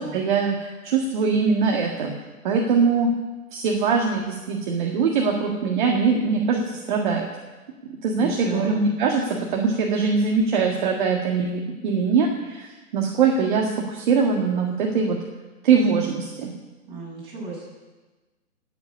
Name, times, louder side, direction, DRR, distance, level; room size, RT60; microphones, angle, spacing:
voice 1, 0.0-2.1 2.4-3.1 3.5-7.2 8.0-9.2 9.5-12.7 12.9-15.2 15.6-16.5, right 5 dB, 35° right, 0 dB, 1.9 m, -22 dB
voice 2, 8.2-9.0 16.9-17.7, right 3 dB, 10° right, -6 dB, 7.7 m, -35 dB
17.0 x 8.4 x 9.8 m, 1.2 s
hypercardioid pair, 160°, 44 cm